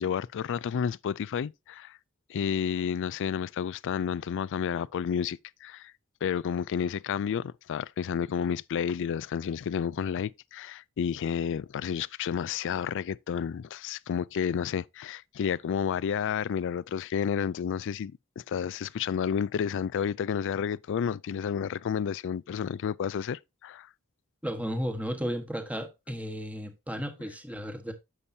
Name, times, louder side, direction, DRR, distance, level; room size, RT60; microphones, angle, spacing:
voice 1, 0.0-2.0 2.3-5.9 6.2-23.9, left 7 dB, 60° left, 0.3 m, -31 dB
voice 2, 24.4-27.9, equal, 5° right, 1.3 m, -34 dB
9.8 x 7.1 x 2.7 m
head